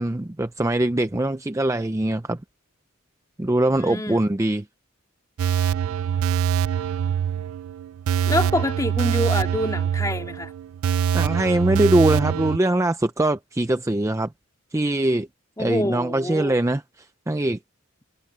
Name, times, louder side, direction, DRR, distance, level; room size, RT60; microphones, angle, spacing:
voice 1, 0.0-2.4 3.4-4.6 11.1-14.3 14.7-15.3 15.6-16.8 17.3-17.6, right 1 dB, 15° right, 0.5 m, -22 dB
voice 2, 3.7-4.2 8.3-10.5 15.6-16.6, left 1 dB, 15° left, 2.1 m, -26 dB
sound 1, 5.4-12.6, right 9 dB, 85° right, 0.3 m, -24 dB
head